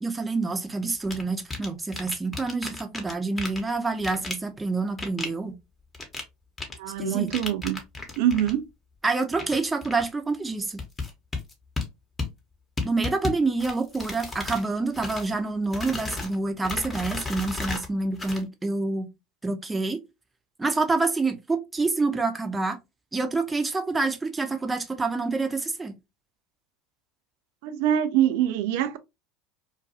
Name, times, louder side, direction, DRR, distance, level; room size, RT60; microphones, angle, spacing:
voice 1, 0.0-5.6 7.0-7.3 9.0-10.8 12.8-19.1 19.4-20.0 20.6-22.8 23.1-25.9, right 3 dB, 15° right, 0.5 m, -27 dB
sound 1, 1.0-1.2 1.5-3.1 3.4-3.6 4.0-4.3 5.0-5.3 5.9-6.2 6.6-6.7 7.3-8.5 9.3-9.6 9.8-10.0 10.8-11.8 12.2-12.3 12.8-13.3 13.6-14.7 14.9-15.3 15.7-16.3 16.6-17.9 18.1-18.4, left 3 dB, 20° left, 0.8 m, -33 dB
voice 2, 6.8-7.8 8.2-8.7 14.0-14.1 27.6-29.0, right 11 dB, 65° right, 0.3 m, -24 dB
2.4 x 2.2 x 2.6 m
hypercardioid pair, 75°, 0 cm